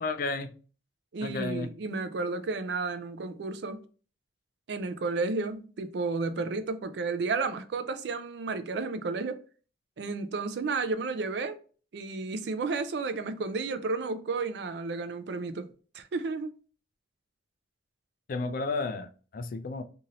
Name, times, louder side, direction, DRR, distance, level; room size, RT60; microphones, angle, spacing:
voice 1, 0.0-0.5 1.2-1.7 18.3-19.8, left 3 dB, 50° left, 0.3 m, -32 dB
voice 2, 1.1-3.8 4.7-9.4 10.0-11.6 11.9-15.7 15.9-16.5, right 3 dB, 65° right, 0.4 m, -32 dB
2.7 x 2.5 x 2.9 m
head